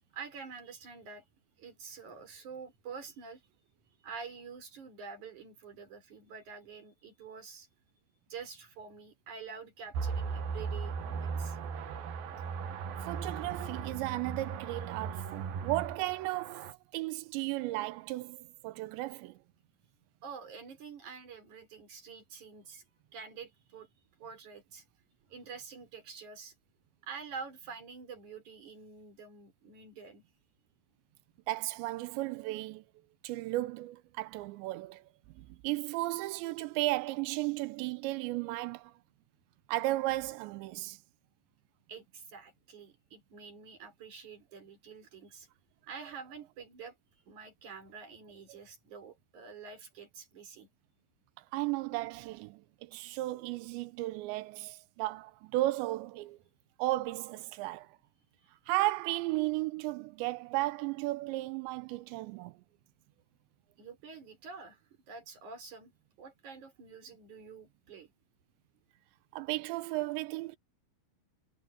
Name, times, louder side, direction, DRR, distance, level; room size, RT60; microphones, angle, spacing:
voice 1, 0.1-1.2 1.6-3.4 4.0-7.7 8.3-11.6 15.1-15.2 20.2-22.8 23.1-23.9 24.2-24.8 25.3-26.5 27.0-30.2 41.9-45.5 45.9-50.7 58.4-58.5 63.8-64.8 65.1-65.9 66.2-68.1, right 5 dB, 45° right, 5.2 m, -47 dB
sound 1, 9.9-16.7, right 6 dB, 60° right, 2.9 m, -37 dB
voice 2, 13.0-19.4 31.5-32.8 33.2-35.0 35.3-38.9 39.7-41.0 51.4-56.4 56.8-58.0 58.7-62.6 69.3-70.6, right 18 dB, 80° right, 3.0 m, -35 dB
omnidirectional pair, 5.2 m